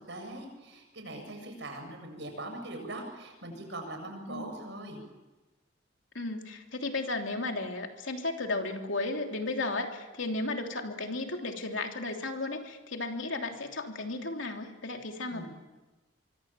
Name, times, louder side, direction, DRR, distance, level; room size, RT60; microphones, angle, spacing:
voice 1, 0.1-5.0 15.3-15.5, right 1 dB, 60° right, 4 dB, 7.6 m, -41 dB
voice 2, 4.3-4.6 6.1-15.5, left 2 dB, 70° left, 3 dB, 3.2 m, -34 dB
25.0 x 24.5 x 7.6 m, 1.1 s
head